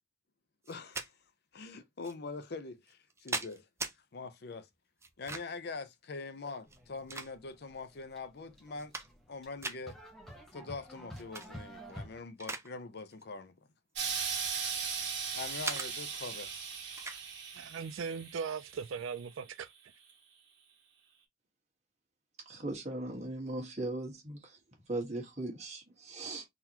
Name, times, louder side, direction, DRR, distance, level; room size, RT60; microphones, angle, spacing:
sound 1, 0.6-1.1 2.0-2.1 2.9-3.9 5.0-5.6 6.6-7.7 8.2-8.3 8.7-9.3 9.6-9.8 11.1-11.5 11.9-12.7 13.0-13.2 14.0-15.1 15.6-15.9 17.0-17.2, right 4 dB, 15° right, 0.4 m, -40 dB
voice 1, 0.7-1.1 1.5-3.6 4.1-4.7 5.2-8.9 9.3-10.0 10.5-13.5 15.3-16.5, left 4 dB, 55° left, 0.6 m, -43 dB
sound 2, 6.7-12.2, equal, ahead, 1.0 m, -50 dB
Explosion, 14.0-19.3 20.1-20.2, right 6 dB, 60° right, 1.6 m, -38 dB
voice 2, 17.5-19.7, right 6 dB, 80° right, 0.4 m, -38 dB
voice 3, 22.4-24.6 24.9-26.5, right 2 dB, 35° right, 1.5 m, -38 dB
3.9 x 2.9 x 2.8 m
head